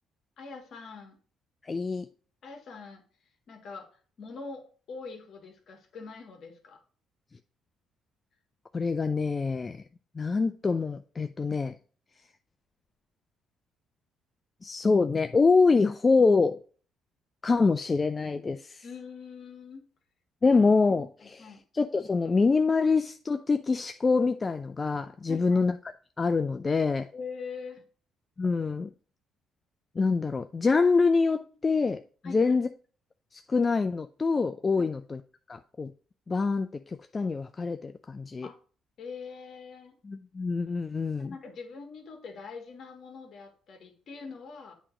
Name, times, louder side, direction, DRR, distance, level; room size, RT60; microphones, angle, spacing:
voice 1, 0.4-1.2 2.4-3.0 3.5-3.9 4.2-6.8 18.8-19.8 21.2-21.6 25.3-25.6 27.1-27.8 32.2-32.6 34.8-34.9 38.4-38.6 39.0-40.0 41.2-44.7, left 5 dB, 60° left, 1.5 m, -43 dB
voice 2, 1.6-2.1 8.7-9.8 10.2-11.7 14.6-16.6 17.4-18.8 20.4-25.7 26.2-27.1 28.4-28.9 30.0-32.7 33.3-35.2 35.5-35.9 36.3-38.5 40.1-41.3, left 4 dB, 30° left, 0.4 m, -25 dB
8.3 x 3.0 x 5.0 m
supercardioid pair, 75°, 0 cm